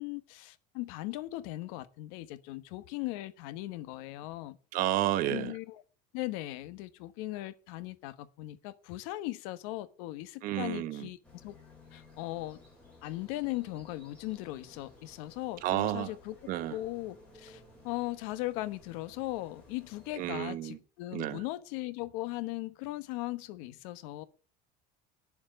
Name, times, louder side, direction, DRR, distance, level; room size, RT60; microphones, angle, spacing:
voice 1, 0.0-4.6 5.3-5.8 6.1-11.5 11.9-12.6 13.0-16.4 16.7-24.2, left 17 dB, 80° left, 1.2 m, -38 dB
voice 2, 4.7-5.5 10.4-11.1 15.6-16.1 16.5-16.7 20.2-20.8 21.1-21.4, right 13 dB, 50° right, 1.1 m, -31 dB
sound 1, 11.2-20.3, left 2 dB, 5° left, 6.2 m, -57 dB
10.0 x 7.2 x 8.8 m
cardioid pair, 165°, 18 cm